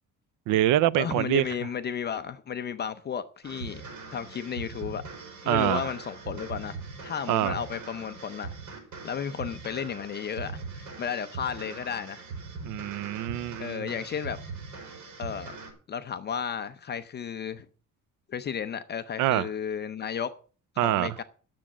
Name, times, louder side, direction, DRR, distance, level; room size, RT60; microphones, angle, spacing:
voice 1, 0.5-1.4 5.5-5.9 7.3-7.6 12.6-13.9 19.2-19.5 20.8-21.1, right 13 dB, 90° right, 0.6 m, -25 dB
voice 2, 1.0-3.8 4.1-5.0 5.4-6.8 7.0-8.5 9.0-12.2 13.6-14.4 15.2-15.6 15.9-17.7 18.3-20.3 20.8-21.2, left 7 dB, 35° left, 0.6 m, -33 dB
sound 1, 3.4-15.7, right 4 dB, 70° right, 4.6 m, -41 dB
10.0 x 7.4 x 7.2 m
cardioid pair, 160°, 30 cm